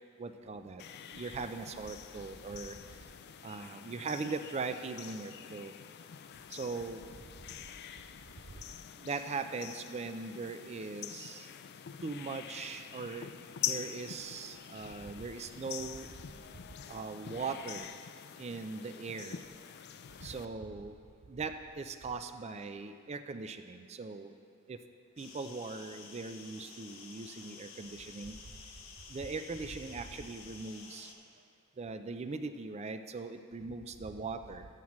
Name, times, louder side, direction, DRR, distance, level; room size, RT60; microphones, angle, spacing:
voice 1, 0.2-0.8 1.1-2.8 3.4-5.7 6.5-7.0 8.5-8.6 9.0-11.5 12.0-13.3 13.6-16.1 16.9-17.9 18.4-19.4 20.2-21.0 21.3-24.3 24.7-24.8 25.2-28.4 29.1-31.1 31.8-34.7, right 4 dB, 30° right, 9 dB, 0.4 m, -40 dB
sound 1, 0.8-20.4, left 9 dB, 50° left, 0.3 m, -45 dB
sound 2, 25.2-31.1, left 5 dB, 85° left, 0.9 m, -51 dB
13.0 x 7.2 x 3.1 m, 2.3 s
head